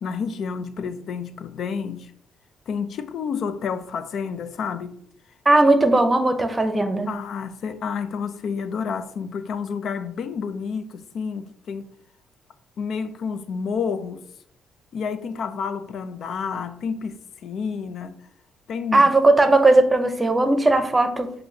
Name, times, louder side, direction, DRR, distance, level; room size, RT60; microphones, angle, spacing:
voice 1, 0.0-2.1 2.7-5.0 7.1-11.9 12.8-14.2 14.9-17.2 17.4-18.2 18.7-19.1, left 6 dB, 65° left, 0.4 m, -29 dB
voice 2, 5.5-7.1 18.9-21.3, right 2 dB, 20° right, 0.7 m, -17 dB
7.5 x 2.6 x 2.7 m
cardioid pair, 90°, 0 cm